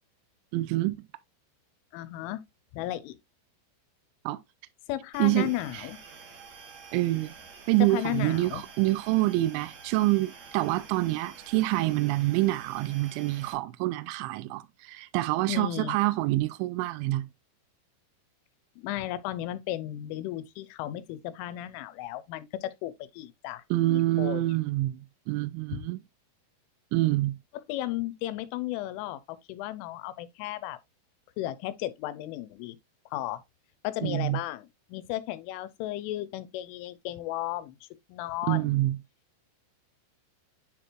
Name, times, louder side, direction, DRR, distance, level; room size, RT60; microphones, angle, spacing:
voice 1, 0.5-1.0 4.3-4.4 5.2-5.9 6.9-7.3 7.7-17.3 23.7-26.0 26.9-27.4 34.0-34.4 38.4-39.0, right 17 dB, 85° right, 2.8 m, -26 dB
voice 2, 1.9-2.4 2.7-3.2 4.9-6.0 7.8-8.6 15.5-16.0 18.8-24.4 25.7-25.8 27.5-30.8 31.4-32.8 33.1-33.4 33.8-37.8 38.1-38.7, left 14 dB, 90° left, 3.1 m, -34 dB
sound 1, 5.1-13.5, right 5 dB, 65° right, 1.8 m, -49 dB
10.0 x 4.4 x 2.4 m
omnidirectional pair, 5.6 m